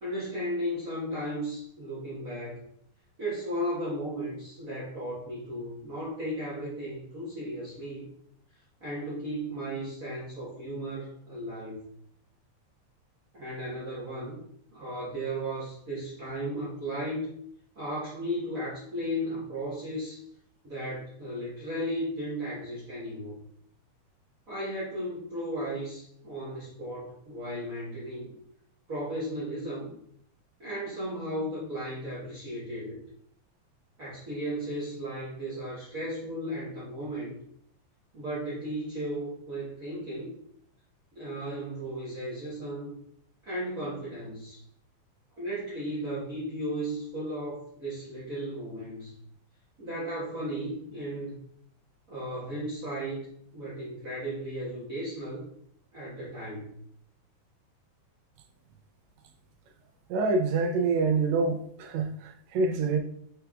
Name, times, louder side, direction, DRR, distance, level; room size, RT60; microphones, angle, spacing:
voice 1, 0.0-2.6 3.2-8.1 8.8-11.8 13.3-14.4 14.7-17.3 17.7-20.2 20.6-23.4 24.5-28.3 28.9-29.9 30.6-33.0 34.0-37.4 38.1-40.3 41.1-43.0 43.4-44.6 45.4-49.1 49.8-51.4 52.1-53.3 53.5-55.4 55.9-56.7, equal, 50° right, 0.9 m, -35 dB
voice 2, 60.1-63.0, right 4 dB, 80° right, 1.8 m, -26 dB
4.9 x 4.5 x 2.3 m
omnidirectional pair, 3.4 m